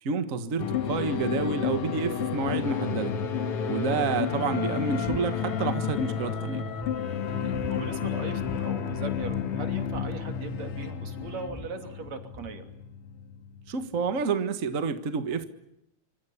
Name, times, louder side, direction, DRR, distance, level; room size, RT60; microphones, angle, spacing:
voice 1, 0.0-3.1 3.7-6.6 13.7-15.4, right 4 dB, 35° right, 10 dB, 1.4 m, -29 dB
sound 1, 0.6-14.2, left 7 dB, 55° left, 2.3 m, -31 dB
sound 2, 5.0-5.3 5.5-6.1 6.5-6.6 6.8-7.8 8.4-8.6 8.9-9.0 9.2-10.8 11.2-12.6, right 1 dB, 5° right, 1.6 m, -45 dB
voice 2, 7.4-12.6, right 4 dB, 65° right, 7 dB, 4.1 m, -39 dB
27.5 x 25.5 x 7.2 m, 0.85 s
omnidirectional pair, 3.3 m